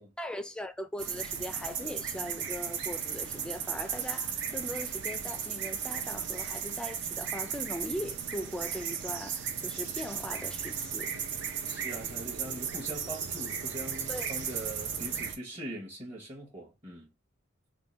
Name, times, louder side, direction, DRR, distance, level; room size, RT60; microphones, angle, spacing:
voice 1, 0.2-11.1 14.1-14.3, equal, 5° left, 0.4 m, -40 dB
sound 1, 1.0-15.3, right 7 dB, 60° right, 0.7 m, -35 dB
voice 2, 11.6-17.1, right 1 dB, 25° right, 1.0 m, -42 dB
3.6 x 2.3 x 4.1 m
head